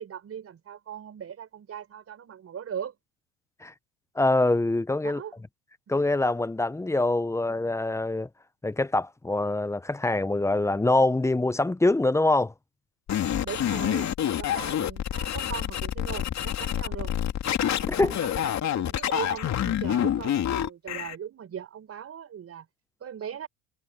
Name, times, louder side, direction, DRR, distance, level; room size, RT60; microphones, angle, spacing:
voice 1, 0.0-2.9 5.0-5.3 13.4-17.2 18.0-22.7 23.0-23.5, right 8 dB, 35° right, 5.6 m, -39 dB
voice 2, 4.2-5.2 5.9-8.3 8.6-12.5 17.9-18.1, left 2 dB, 5° left, 0.8 m, -24 dB
sound 1, 13.1-21.1, left 10 dB, 40° left, 2.8 m, -27 dB
hypercardioid pair, 80°, 40 cm